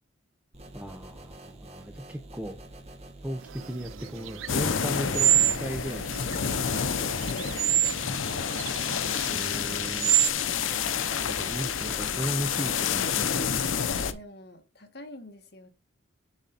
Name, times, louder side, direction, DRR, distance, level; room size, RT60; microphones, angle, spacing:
sound 1, 0.5-14.1, right 1 dB, 35° right, 1.6 m, -46 dB
voice 1, 0.7-2.6 3.2-5.3 5.6-6.3 9.3-10.2 11.2-13.6, equal, 5° right, 0.8 m, -36 dB
sound 2, 3.5-10.3, right 14 dB, 85° right, 0.4 m, -28 dB
sound 3, 4.5-14.1, left 7 dB, 90° left, 0.7 m, -29 dB
voice 2, 7.1-8.0 14.1-15.7, left 1 dB, 55° left, 1.8 m, -46 dB
10.0 x 4.0 x 4.2 m
head